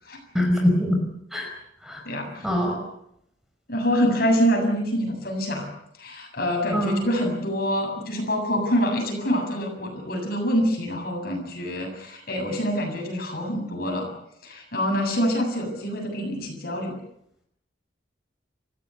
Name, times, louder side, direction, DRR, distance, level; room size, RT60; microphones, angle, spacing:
voice 1, 0.3-1.0 1.3-1.5 1.8-2.0 2.4-2.8 6.7-7.0, left 1 dB, ahead, 1 dB, 5.2 m, -23 dB
voice 2, 2.0-2.5 3.7-5.7 6.0-14.1 14.4-17.0, equal, 50° left, 2 dB, 7.5 m, -26 dB
30.0 x 15.5 x 8.2 m, 0.75 s
head